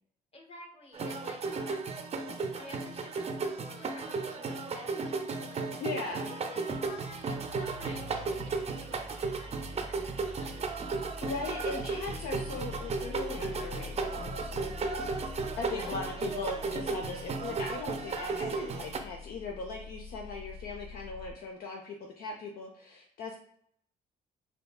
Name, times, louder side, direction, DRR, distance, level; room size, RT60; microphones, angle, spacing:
voice 1, 0.3-2.2 2.5-10.5 15.8-16.3, left 2 dB, 30° left, 1 dB, 1.3 m, -51 dB
sound 1, 0.9-19.0, right 4 dB, 35° right, 0.6 m, -35 dB
voice 2, 5.8-6.3 11.2-15.2 15.6-23.3, left 3 dB, 55° left, 0 dB, 0.6 m, -39 dB
sound 2, 6.8-21.3, left 2 dB, 80° left, 1.1 m, -45 dB
4.3 x 2.8 x 2.3 m, 0.67 s
hypercardioid pair, 60°, 19 cm